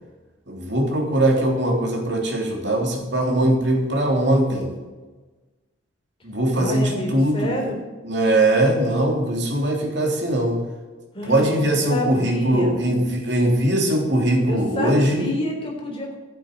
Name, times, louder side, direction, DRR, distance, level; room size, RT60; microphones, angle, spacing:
voice 1, 0.5-4.7 6.2-7.5 8.0-10.6 11.2-15.3, right 1 dB, 60° right, 0 dB, 3.4 m, -21 dB
voice 2, 6.5-7.8 11.1-11.5 11.9-12.8 14.5-16.2, equal, 25° left, 0 dB, 3.7 m, -28 dB
12.5 x 9.3 x 8.3 m, 1.3 s
head